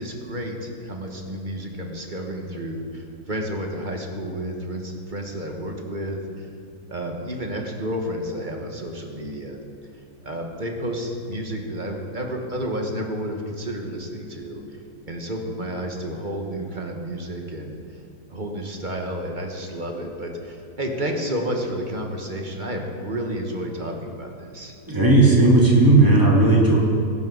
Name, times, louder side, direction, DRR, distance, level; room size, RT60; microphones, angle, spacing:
voice 1, 0.0-6.5 6.9-9.6 9.9-14.6 15.1-18.0 18.3-24.7, equal, 30° right, 2 dB, 1.4 m, -31 dB
voice 2, 24.9-26.8, right 2 dB, 10° right, -4 dB, 2.5 m, -15 dB
16.5 x 12.0 x 4.0 m, 2.3 s
omnidirectional pair, 1.8 m